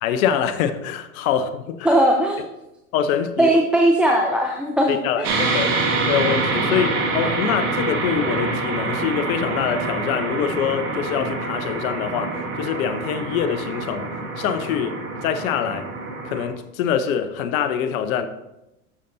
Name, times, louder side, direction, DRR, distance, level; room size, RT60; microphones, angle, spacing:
voice 1, 0.0-2.0 2.9-3.6 4.9-5.7 6.1-14.1 14.4-15.9 16.2-18.3, left 8 dB, 65° left, 0.8 m, -24 dB
voice 2, 1.8-2.4 3.4-5.3, right 1 dB, ahead, 0.6 m, -18 dB
sound 1, 5.2-16.5, right 3 dB, 80° right, 2.1 m, -26 dB
12.5 x 6.7 x 2.7 m
hypercardioid pair, 105°, 45 cm